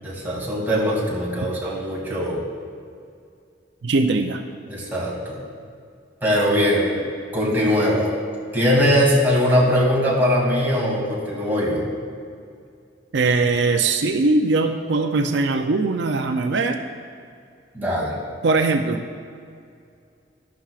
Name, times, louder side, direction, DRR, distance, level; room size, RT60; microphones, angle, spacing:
voice 1, 0.0-2.4 4.7-5.4 6.2-7.0 7.3-8.1 8.5-11.8 17.7-18.2, equal, 10° right, -5 dB, 2.5 m, -21 dB
voice 2, 3.8-4.4 13.1-16.8 18.4-19.0, right 3 dB, 80° right, 5 dB, 0.5 m, -20 dB
12.5 x 11.5 x 2.4 m, 2.3 s
head